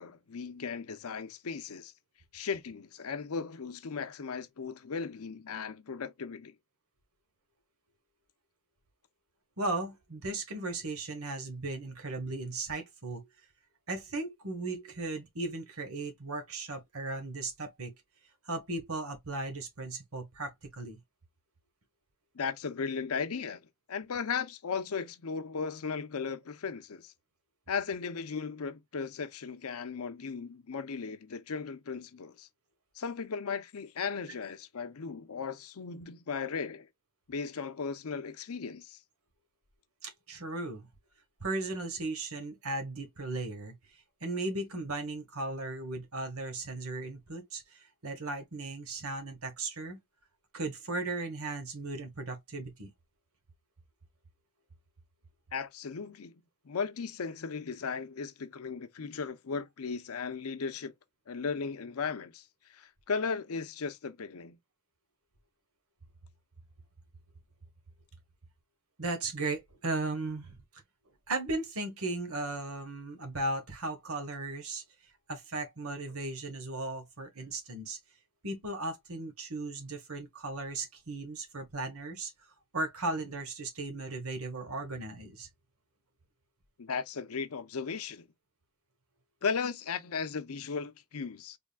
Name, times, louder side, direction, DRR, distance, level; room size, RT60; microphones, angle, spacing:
voice 1, 0.0-1.9 2.3-6.5 22.3-23.6 23.9-27.1 27.7-32.5 33.0-36.9 37.3-39.0 55.5-56.4 56.6-60.9 61.3-62.4 62.7-64.6 86.8-88.3 89.4-91.6, left 5 dB, 85° left, 0.6 m, -36 dB
voice 2, 9.6-13.2 13.9-17.9 18.4-21.0 40.0-40.9 41.4-50.0 50.5-52.9 69.0-70.6 71.3-74.8 75.3-78.0 78.4-82.3 82.7-85.5, right 2 dB, 80° right, 1.2 m, -36 dB
3.6 x 3.5 x 2.2 m
head